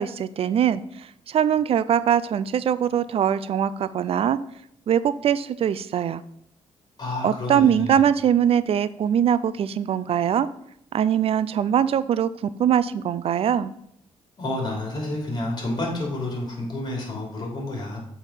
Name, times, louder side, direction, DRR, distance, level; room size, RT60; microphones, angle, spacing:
voice 1, 0.0-4.4 4.9-6.2 7.2-10.5 10.9-12.3 12.6-13.7, right 9 dB, 55° right, 16 dB, 0.4 m, -22 dB
voice 2, 7.0-8.0 14.4-18.0, left 2 dB, 35° left, -1 dB, 3.0 m, -29 dB
7.3 x 3.5 x 5.6 m, 0.73 s
cardioid pair, 85°, 12 cm